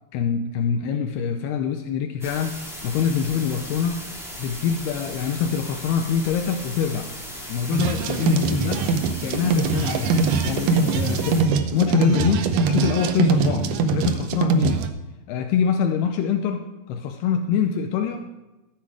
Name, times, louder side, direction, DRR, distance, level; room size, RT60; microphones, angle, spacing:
voice 1, 0.1-2.6 2.8-4.1 4.4-7.1 7.5-8.8 9.2-10.1 10.4-11.5 11.7-14.9 15.3-18.3, left 7 dB, 85° left, 6 dB, 2.7 m, -24 dB
sound 1, 2.2-11.4, equal, ahead, 0.6 m, -37 dB
sound 2, 7.7-14.9, right 4 dB, 80° right, 1.9 m, -22 dB
13.5 x 8.1 x 4.9 m, 1.0 s
omnidirectional pair, 4.6 m